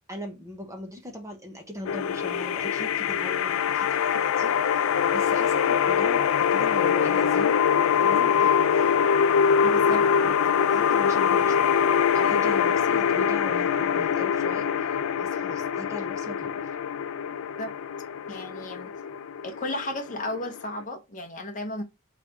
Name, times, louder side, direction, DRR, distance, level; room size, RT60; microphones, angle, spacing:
voice 1, 0.1-7.6 8.0-9.0 9.9-10.3 10.7-11.8 12.1-16.7, equal, 15° right, 0.8 m, -40 dB
sound 1, 1.8-20.8, left 7 dB, 70° left, 0.4 m, -23 dB
voice 2, 9.6-10.1 17.6-17.7 18.3-18.9 19.4-21.8, left 1 dB, 40° left, 0.9 m, -33 dB
3.9 x 3.2 x 3.5 m
head